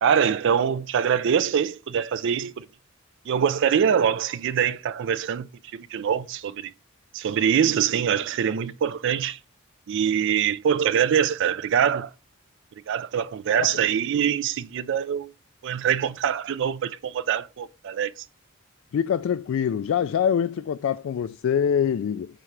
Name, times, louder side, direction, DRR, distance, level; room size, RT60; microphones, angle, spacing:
voice 1, 0.0-2.7 3.3-6.7 7.1-9.4 9.9-12.1 12.9-15.3 15.6-18.1, right 8 dB, 60° right, 0.4 m, -24 dB
voice 2, 18.9-22.3, left 8 dB, 65° left, 0.3 m, -24 dB
9.0 x 3.7 x 3.2 m
head